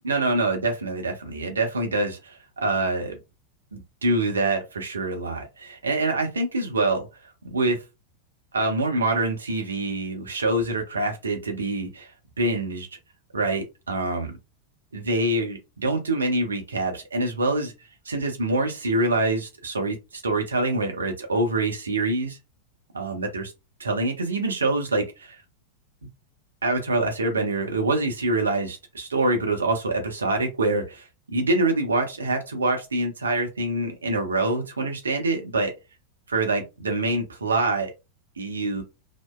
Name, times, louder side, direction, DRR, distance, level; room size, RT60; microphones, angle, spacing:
voice 1, 0.0-3.2 3.7-7.1 7.4-7.8 8.5-12.1 12.4-12.9 13.3-14.3 14.9-17.7 18.1-22.4 22.9-23.5 23.8-25.4 26.6-35.7 36.3-37.9 38.4-38.8, right 2 dB, 75° right, 0.7 m, -25 dB
2.8 x 2.1 x 2.2 m
figure-of-eight pair, 90°, 0 cm